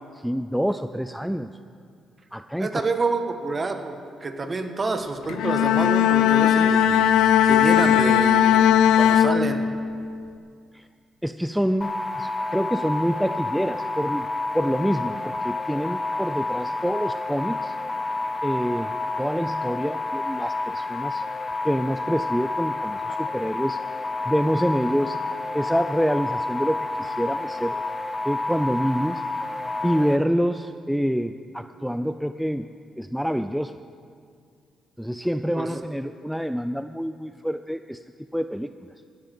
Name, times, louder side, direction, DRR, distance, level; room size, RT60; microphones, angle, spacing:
voice 1, 0.2-1.5 2.3-2.8 10.7-10.9 11.2-14.3 14.5-17.8 18.4-21.2 21.6-23.8 24.3-25.2 25.5-27.8 28.2-29.2 29.8-33.8 35.0-38.0 38.3-38.7, equal, ahead, 10 dB, 0.4 m, -26 dB
voice 2, 2.6-6.9 7.4-9.6 35.6-35.7, right 3 dB, 30° right, 7 dB, 1.4 m, -28 dB
Bowed string instrument, 5.3-10.0, left 9 dB, 90° left, 0.6 m, -18 dB
sound 1, 11.8-30.2, left 3 dB, 25° left, 0.8 m, -29 dB
15.0 x 9.3 x 7.7 m, 2.3 s
cardioid pair, 90°, 0 cm